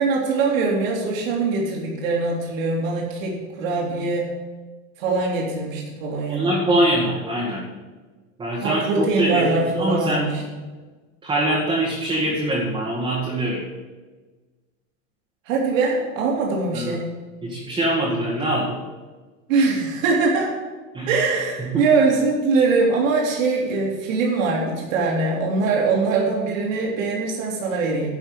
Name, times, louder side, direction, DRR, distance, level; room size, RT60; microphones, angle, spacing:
voice 1, 0.0-4.3 5.0-6.6 8.6-10.4 15.5-17.1 19.5-20.5 21.1-28.2, right 4 dB, 80° right, -3 dB, 3.6 m, -22 dB
voice 2, 6.3-7.6 8.4-10.3 11.2-13.6 16.7-17.0 17.4-18.8 20.9-21.1 21.6-21.9, right 1 dB, 10° right, -8 dB, 2.0 m, -23 dB
11.5 x 5.5 x 8.3 m, 1.3 s
supercardioid pair, 150°, 39 cm